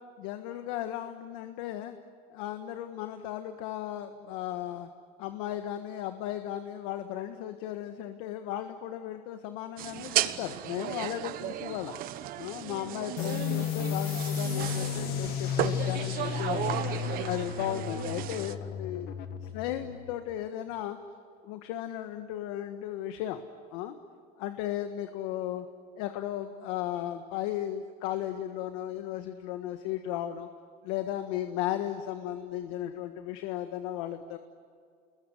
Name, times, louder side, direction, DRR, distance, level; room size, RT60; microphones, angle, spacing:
voice 1, 0.2-2.0 2.3-4.9 5.2-12.0 12.4-19.1 19.4-21.0 21.4-23.4 23.7-24.0 24.4-25.6 26.0-30.5 30.8-34.4, left 12 dB, 75° left, 8 dB, 1.5 m, -35 dB
sound 1, 9.8-18.5, right 13 dB, 50° right, 1.2 m, -34 dB
sound 2, 13.2-20.4, left 8 dB, 55° left, 1.8 m, -33 dB
29.0 x 21.5 x 9.5 m, 2.2 s
cardioid pair, 140°, 19 cm